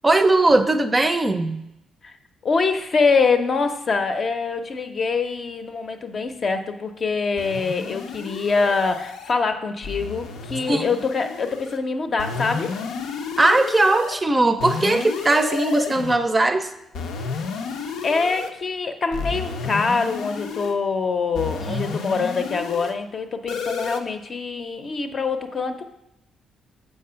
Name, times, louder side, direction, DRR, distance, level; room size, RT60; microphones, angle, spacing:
voice 1, 0.0-1.6 10.7-10.8 13.4-16.7 21.7-21.9 22.1-22.2, right 2 dB, 20° right, 8 dB, 0.5 m, -19 dB
voice 2, 2.4-12.7 17.3-17.4 18.0-25.8, left 4 dB, 45° left, 6 dB, 0.7 m, -24 dB
sound 1, 7.4-9.3 9.8-11.8 12.2-14.2 14.6-16.2 16.9-18.5 19.1-20.8 21.3-22.9 23.5-24.0, left 5 dB, 85° left, 0.6 m, -31 dB
6.7 x 4.7 x 5.6 m, 0.84 s
cardioid pair, 90°, 0 cm